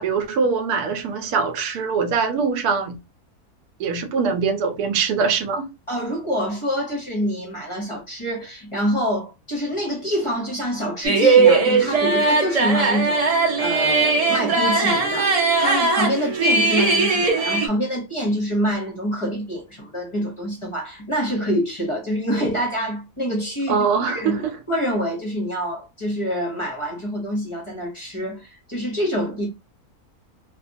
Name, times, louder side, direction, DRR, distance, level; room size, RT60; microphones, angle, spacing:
voice 1, 0.0-3.0 3.8-5.6 23.7-24.5, right 5 dB, 80° right, 1.1 m, -22 dB
voice 2, 5.9-24.4 24.7-29.5, equal, 35° left, 0.4 m, -26 dB
sound 1, 11.0-17.7, right 3 dB, 55° right, 0.4 m, -19 dB
2.7 x 2.2 x 2.5 m
omnidirectional pair, 1.6 m